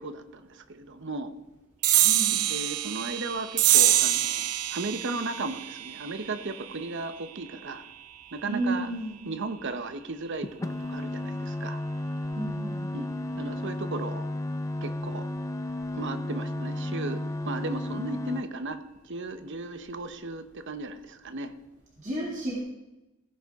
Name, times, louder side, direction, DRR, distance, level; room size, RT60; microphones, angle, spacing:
voice 1, 0.0-1.3 2.3-7.8 8.3-8.9 9.2-11.8 12.9-14.3 14.8-15.3 15.9-21.5, right 2 dB, 55° right, 10 dB, 0.9 m, -36 dB
sound 1, 1.8-8.7, right 13 dB, 85° right, 0.6 m, -26 dB
voice 2, 2.0-2.4 8.5-9.2 12.4-12.9 22.0-22.6, right 1 dB, 35° right, -5 dB, 2.5 m, -31 dB
sound 2, 10.4-18.4, left 1 dB, 15° left, 0.3 m, -33 dB
16.5 x 9.8 x 3.6 m, 1.0 s
head